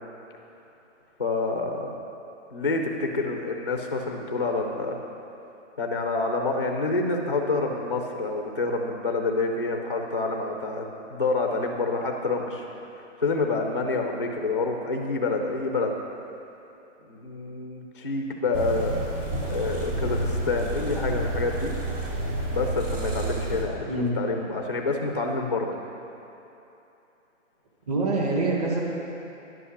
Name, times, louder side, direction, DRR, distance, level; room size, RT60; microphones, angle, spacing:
voice 1, 1.2-1.9 2.5-5.0 5.8-10.8 11.1-12.6 13.0-15.9 17.0-19.0 19.5-21.7 22.5-23.9 24.2-25.7, left 3 dB, 25° left, 3 dB, 0.5 m, -27 dB
sound 1, 18.5-23.6, right 1 dB, 75° right, 2.8 m, -29 dB
voice 2, 23.9-24.2 27.9-28.8, right 2 dB, 30° right, -1 dB, 1.6 m, -25 dB
10.5 x 8.5 x 6.2 m, 2.9 s
hypercardioid pair, 175°, 38 cm